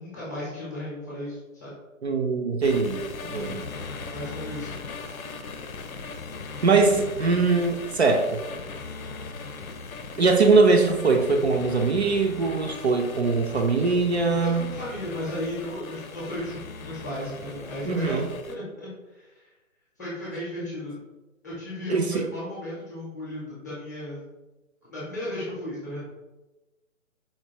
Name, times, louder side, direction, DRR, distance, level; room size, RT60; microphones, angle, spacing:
voice 1, 0.0-1.7 4.1-4.7 14.4-19.5 20.0-20.9 21.4-24.2 24.9-26.0, left 1 dB, 15° left, -8 dB, 0.6 m, -35 dB
voice 2, 2.0-3.6 6.6-8.4 10.2-14.6 17.9-18.3 21.9-22.3, right 4 dB, 55° right, 3 dB, 0.5 m, -22 dB
sound 1, 2.6-18.6, left 4 dB, 90° left, 0.6 m, -39 dB
4.4 x 2.6 x 2.8 m, 1.1 s
figure-of-eight pair, 155°, 41 cm